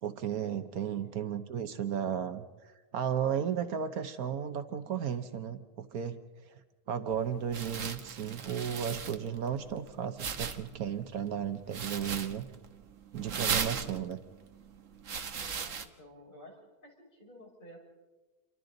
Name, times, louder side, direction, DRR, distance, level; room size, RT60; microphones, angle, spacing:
voice 1, 0.0-2.4 2.9-6.2 6.5-6.6 6.9-12.5 13.1-14.2, right 8 dB, 80° right, 9 dB, 1.4 m, -34 dB
voice 2, 0.8-1.2 15.4-17.8, equal, 35° left, -2 dB, 5.8 m, -53 dB
sound 1, 7.1-15.9, right 6 dB, 60° right, 1.5 m, -38 dB
29.0 x 24.5 x 4.0 m, 1.2 s
omnidirectional pair, 1.5 m